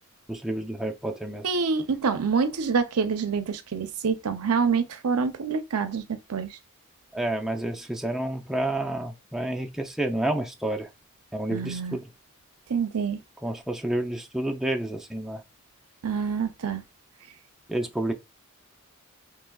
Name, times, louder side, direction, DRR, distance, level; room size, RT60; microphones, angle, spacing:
voice 1, 0.3-1.5 7.1-10.9 11.3-12.1 13.4-15.4 17.7-18.1, right 1 dB, ahead, 0.5 m, -29 dB
voice 2, 1.4-6.6 11.5-12.0 12.7-13.2 16.0-16.8, right 5 dB, 85° right, 0.6 m, -26 dB
4.6 x 3.0 x 2.3 m
head